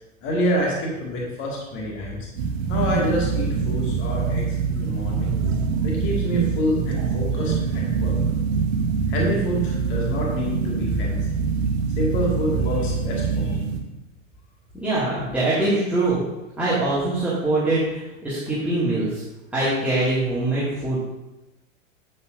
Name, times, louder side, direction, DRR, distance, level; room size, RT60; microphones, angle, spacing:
voice 1, 0.2-2.3 2.7-5.3 5.8-8.2 9.1-11.2 12.0-13.7, equal, 30° left, -3 dB, 2.1 m, -27 dB
sound 1, 2.3-13.8, right 5 dB, 50° right, 1.4 m, -24 dB
voice 2, 14.8-16.2 16.6-19.2 19.5-21.1, right 2 dB, 5° right, -11 dB, 2.1 m, -23 dB
9.4 x 8.9 x 2.6 m, 1.0 s
figure-of-eight pair, 100°, 39 cm